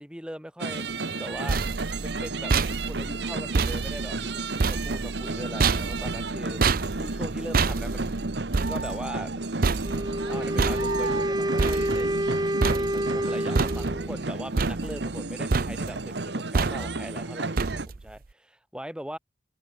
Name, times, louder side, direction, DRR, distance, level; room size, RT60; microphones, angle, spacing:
voice 1, 0.0-1.6 2.0-2.5 2.8-6.6 6.9-8.2 8.6-9.3 10.3-12.3 12.7-19.2, equal, 5° right, 7.9 m, -40 dB
sound 1, 0.6-17.9, right 3 dB, 65° right, 1.3 m, -32 dB
sound 2, 1.1-12.3 12.6-13.2 13.6-14.2 14.6-15.3 15.5-16.0 16.5-17.1 17.6-18.1, right 4 dB, 50° right, 0.6 m, -28 dB
Wind instrument woodwind instrument, 9.8-14.1, right 1 dB, 20° right, 5.3 m, -28 dB
head